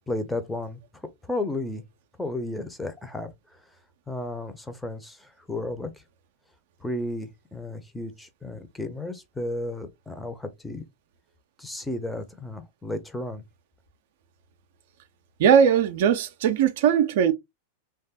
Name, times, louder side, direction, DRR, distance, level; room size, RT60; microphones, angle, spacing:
voice 1, 0.1-0.8 1.3-1.8 2.2-3.3 4.1-5.9 6.8-10.8 11.6-13.4, left 2 dB, 5° left, 0.5 m, -33 dB
voice 2, 15.4-17.3, right 8 dB, 55° right, 0.4 m, -19 dB
3.2 x 2.3 x 2.8 m
figure-of-eight pair, 90°, 0 cm